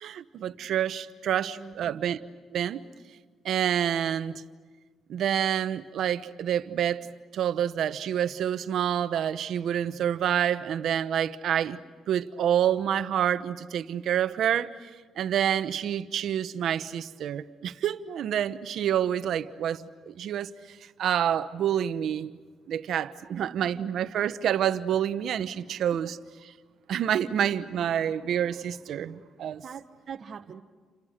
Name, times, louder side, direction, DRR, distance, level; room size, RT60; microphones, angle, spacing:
voice 1, 0.0-2.2 2.5-2.8 3.4-4.4 5.1-7.1 7.3-11.8 12.1-14.9 15.2-22.4 22.7-26.2 26.9-29.6, right 9 dB, 70° right, 1.1 m, -28 dB
voice 2, 1.6-2.0 23.2-23.8 29.6-30.6, right 7 dB, 50° right, 1.4 m, -43 dB
30.0 x 27.0 x 6.7 m
cardioid pair, 90°, 0 cm